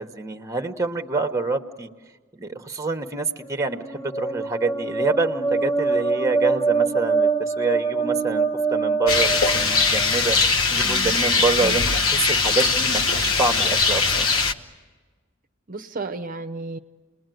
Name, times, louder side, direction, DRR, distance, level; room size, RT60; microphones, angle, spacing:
voice 1, 0.0-1.9 2.3-8.5 8.7-10.4 10.7-14.3, right 3 dB, 15° right, 7 dB, 1.1 m, -26 dB
sound 1, 3.5-10.3, right 4 dB, 15° left, 0.8 m, -24 dB
Rain, 9.1-14.5, left 4 dB, 85° left, 1.0 m, -21 dB
voice 2, 10.8-11.2 11.6-11.8 15.7-16.8, right 3 dB, 40° right, 7 dB, 0.7 m, -33 dB
29.5 x 20.5 x 9.2 m, 1.4 s
head